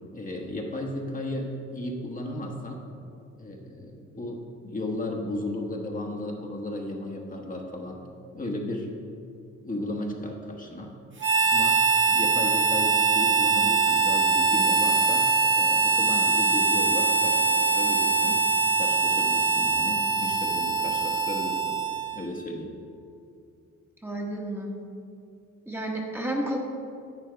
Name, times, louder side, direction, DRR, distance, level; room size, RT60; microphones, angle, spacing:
voice 1, 0.1-2.9 3.3-8.0 8.3-8.9 9.6-10.9 11.4-11.8 12.1-15.3 15.5-18.5 18.8-21.8 22.1-22.7, left 1 dB, 25° left, 0 dB, 1.2 m, -34 dB
Harmonica, 11.2-22.3, right 4 dB, 40° right, 1.6 m, -23 dB
voice 2, 24.0-24.7 25.7-26.6, right 1 dB, 10° right, -1 dB, 1.2 m, -31 dB
10.5 x 8.3 x 3.4 m, 2.4 s
cardioid pair, 90°, 30 cm